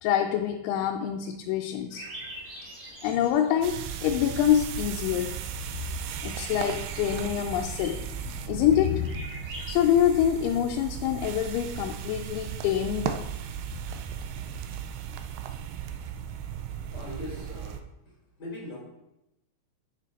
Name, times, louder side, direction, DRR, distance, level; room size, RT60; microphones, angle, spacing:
voice 1, 0.0-2.0 3.0-5.4 6.2-9.3 9.7-13.2, left 10 dB, 85° left, 2 dB, 3.0 m, -26 dB
sound 1, 1.9-9.7, right 1 dB, 50° right, 3.8 m, -46 dB
sound 2, 3.6-17.8, right 9 dB, 85° right, 2.2 m, -36 dB
voice 2, 16.9-17.8 18.4-18.8, left 1 dB, 30° left, -5 dB, 3.3 m, -39 dB
9.0 x 6.3 x 4.1 m, 0.89 s
omnidirectional pair, 5.3 m